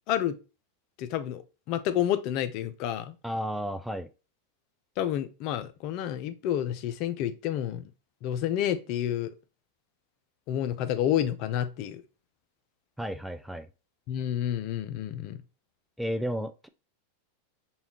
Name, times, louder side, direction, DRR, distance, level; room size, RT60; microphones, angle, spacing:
voice 1, 1.0-3.1 5.0-7.9 8.2-9.3 10.5-12.0 14.1-15.4, left 10 dB, 50° left, 0.5 m, -29 dB
voice 2, 3.2-4.1 13.0-13.7 16.0-16.7, equal, ahead, 0.3 m, -32 dB
5.4 x 2.4 x 2.8 m
hypercardioid pair, 115°, 0 cm